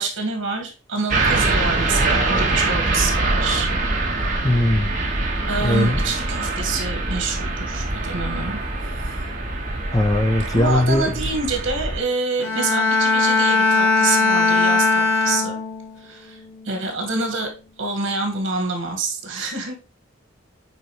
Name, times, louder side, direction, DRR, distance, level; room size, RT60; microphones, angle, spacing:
voice 1, 0.0-3.7 4.1-4.2 5.5-8.6 10.5-15.6 16.0-16.4 16.6-17.5 17.8-19.8, right 3 dB, 70° right, 2.0 m, -27 dB
sound 1, 1.1-12.0, right 2 dB, 40° right, 1.7 m, -23 dB
voice 2, 4.4-4.9 5.6-6.0 9.9-11.1, left 1 dB, 20° left, 0.6 m, -19 dB
Bowed string instrument, 12.4-16.0 16.4-16.8, left 3 dB, 80° left, 2.4 m, -19 dB
8.9 x 4.2 x 3.3 m
head